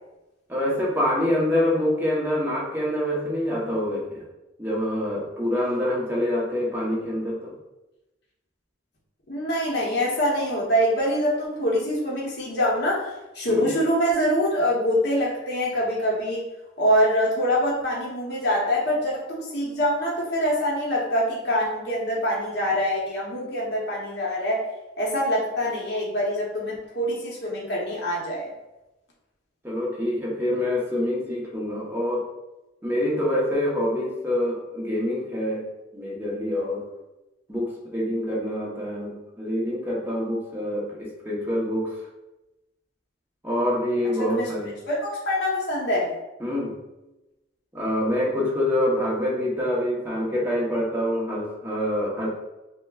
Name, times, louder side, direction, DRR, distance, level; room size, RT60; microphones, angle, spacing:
voice 1, 0.5-4.2 4.6-7.5 13.5-13.7 29.6-32.3 32.8-35.7 35.9-36.9 37.5-42.0 43.4-44.8 46.4-46.8 47.7-52.3, left 1 dB, 10° right, -4 dB, 0.8 m, -26 dB
voice 2, 9.3-16.4 16.8-24.7 25.0-28.5 44.2-44.4 44.9-46.1, equal, 55° left, -4 dB, 0.8 m, -24 dB
5.8 x 2.2 x 2.3 m, 0.99 s
head